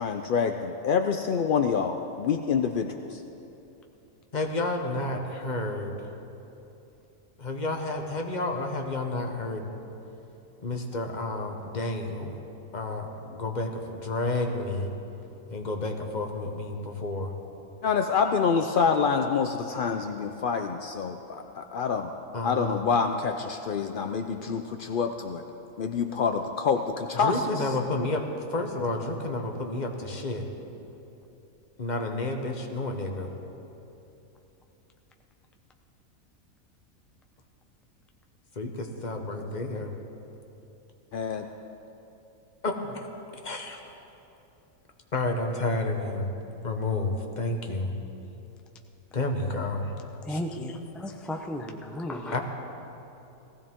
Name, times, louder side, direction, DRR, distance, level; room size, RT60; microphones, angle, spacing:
voice 1, 0.0-3.2 17.8-22.1 22.4-25.4 25.8-27.3 41.1-41.5, left 6 dB, 75° left, 6 dB, 0.4 m, -27 dB
voice 2, 4.3-6.1 7.4-9.7 10.6-12.4 12.7-14.9 15.5-17.3 22.3-22.8 27.1-28.2 28.5-30.5 31.8-33.3 38.5-39.9 42.6-43.1 43.4-43.8 45.1-46.3 46.6-47.9 49.1-49.9 50.3-50.4 52.3-52.4, left 2 dB, 35° left, 3 dB, 1.1 m, -30 dB
voice 3, 50.2-52.4, left 1 dB, ahead, 2 dB, 0.3 m, -34 dB
18.0 x 15.5 x 3.6 m, 2.9 s
omnidirectional pair, 1.5 m